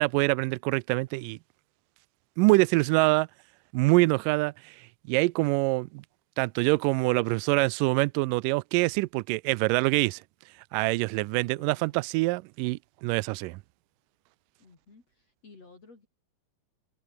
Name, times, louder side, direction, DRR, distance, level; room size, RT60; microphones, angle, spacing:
voice 1, 0.0-1.4 2.4-3.3 3.7-6.0 6.4-10.2 10.7-13.6, right 23 dB, 80° right, 2.0 m, -25 dB
voice 2, 11.1-11.9 14.6-16.1, left 3 dB, 45° left, 6.0 m, -55 dB
omnidirectional pair, 4.3 m